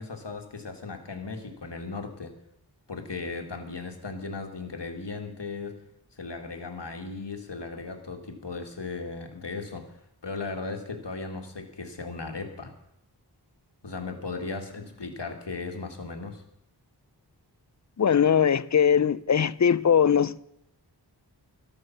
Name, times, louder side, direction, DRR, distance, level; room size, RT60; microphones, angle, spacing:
voice 1, 0.0-2.3 2.9-5.8 6.2-10.0 10.2-12.7 13.8-16.4, left 3 dB, 80° left, 1.9 m, -36 dB
voice 2, 18.0-20.4, left 7 dB, 45° left, 0.5 m, -21 dB
13.0 x 13.0 x 5.8 m
wide cardioid pair, 50°, 41 cm